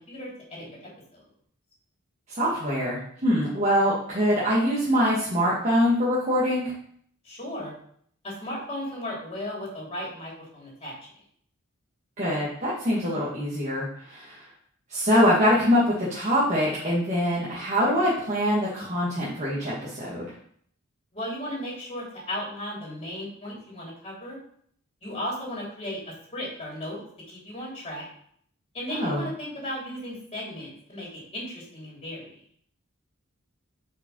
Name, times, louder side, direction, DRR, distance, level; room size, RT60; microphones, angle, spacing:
voice 1, 0.1-1.2 7.2-7.7 8.2-10.9 21.1-24.4 25.0-26.0 26.3-27.0 27.3-28.1 28.7-32.3, left 1 dB, 30° left, -4 dB, 3.1 m, -35 dB
voice 2, 2.3-6.7 12.2-14.4 14.9-20.3 28.9-29.2, equal, 35° right, -7 dB, 1.7 m, -24 dB
5.8 x 5.0 x 5.3 m, 0.63 s
head